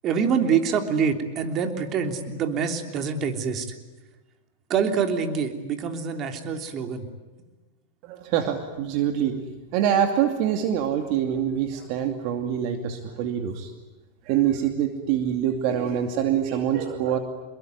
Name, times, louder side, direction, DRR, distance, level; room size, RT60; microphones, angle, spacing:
voice 1, 0.0-3.7 4.7-7.1, right 6 dB, 35° right, 6 dB, 3.3 m, -25 dB
voice 2, 8.0-9.4 9.7-13.7 14.3-17.2, right 9 dB, 55° right, 6 dB, 2.5 m, -25 dB
27.0 x 22.5 x 9.6 m, 1.2 s
supercardioid pair, 130°, 0 cm